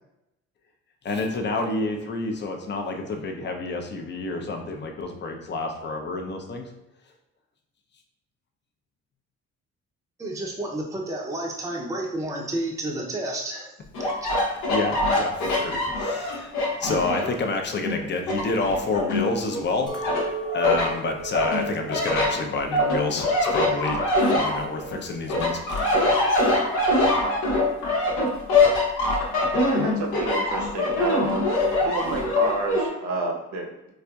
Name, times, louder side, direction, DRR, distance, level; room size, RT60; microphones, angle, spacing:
voice 1, 1.0-6.7 14.4-20.0 20.5-26.5, left 3 dB, 35° left, 3 dB, 0.6 m, -29 dB
voice 2, 10.2-13.7, right 1 dB, 10° right, -2 dB, 0.6 m, -30 dB
sound 1, 13.9-17.4 17.8-19.6 20.0-20.9 21.3-25.0 25.3-32.9, left 2 dB, 90° left, 0.9 m, -23 dB
Chink clink, 19.9-24.3 24.6-25.2, right 4 dB, 15° left, 1.0 m, -37 dB
voice 3, 29.6-31.5 31.8-33.9, right 3 dB, 70° right, 0 dB, 0.9 m, -29 dB
4.1 x 2.5 x 2.3 m, 0.91 s
cardioid pair, 90°, 30 cm